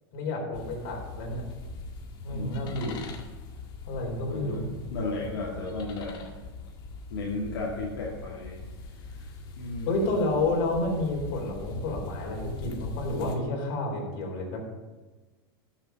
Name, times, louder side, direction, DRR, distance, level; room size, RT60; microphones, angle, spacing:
voice 1, 0.1-1.5 2.2-3.1 3.9-4.7 9.9-14.6, left 2 dB, 55° left, 0 dB, 4.2 m, -30 dB
sound 1, 0.5-13.4, left 3 dB, 35° left, 1.8 m, -41 dB
voice 2, 2.3-2.8 4.3-6.2 7.1-8.6 9.1-9.2 9.5-9.9, left 3 dB, 75° left, -4 dB, 2.3 m, -34 dB
12.5 x 7.3 x 5.3 m, 1.2 s
supercardioid pair, 135°, 13 cm